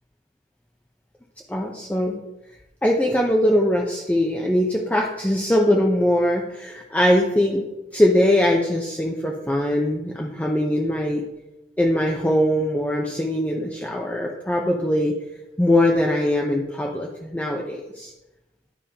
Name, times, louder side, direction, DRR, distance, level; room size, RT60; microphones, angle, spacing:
voice 1, 1.5-2.2 2.8-7.6 7.9-11.2 11.8-15.1 15.6-18.1, left 1 dB, 10° left, -1 dB, 0.5 m, -21 dB
10.0 x 4.9 x 2.8 m, 0.95 s
head